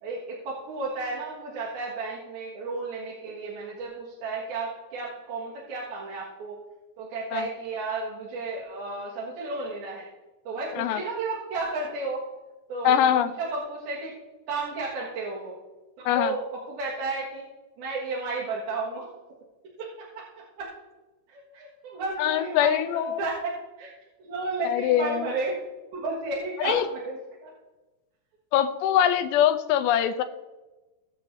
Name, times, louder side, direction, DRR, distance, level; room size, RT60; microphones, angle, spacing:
voice 1, 0.0-6.6 7.0-10.1 10.4-12.3 12.7-12.9 13.2-14.1 14.5-15.5 16.1-17.4 17.8-19.0 19.8-20.7 21.3-23.5 23.8-23.9 24.2-25.5 25.9-27.5, right 3 dB, 65° right, -6 dB, 3.3 m, -33 dB
voice 2, 12.8-13.3 16.1-16.4 22.2-23.2 24.6-25.3 26.6-26.9 28.5-30.2, left 10 dB, 80° left, 9 dB, 2.8 m, -23 dB
20.0 x 7.7 x 2.7 m, 1.1 s
omnidirectional pair, 5.0 m